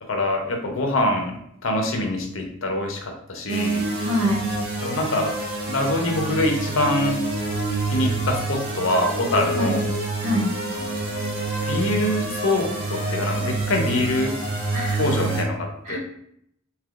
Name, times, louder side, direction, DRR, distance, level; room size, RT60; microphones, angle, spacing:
voice 1, 0.0-3.9 4.8-5.3 5.7-7.2 7.9-9.8 10.7-11.3 11.7-14.4 15.0-16.0, left 1 dB, 75° left, 3 dB, 0.7 m, -25 dB
sound 1, 3.5-15.4, right 3 dB, 75° right, 0.9 m, -27 dB
voice 2, 4.0-4.5 9.5-9.8 10.2-10.6 14.7-15.5 15.8-16.0, left 1 dB, 35° right, -6 dB, 1.2 m, -26 dB
3.3 x 2.9 x 2.4 m, 0.72 s
head